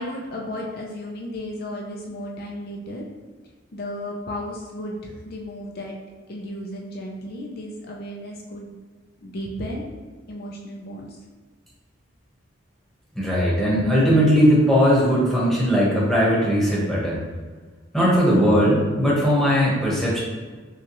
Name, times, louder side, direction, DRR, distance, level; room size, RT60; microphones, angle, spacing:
voice 1, 0.0-3.1 3.7-6.0 6.3-8.7 9.2-9.8 10.3-11.2, left 1 dB, 55° left, -2 dB, 0.5 m, -34 dB
voice 2, 13.1-17.2 17.9-20.2, equal, ahead, -7 dB, 1.1 m, -19 dB
6.0 x 2.4 x 3.0 m, 1.4 s
head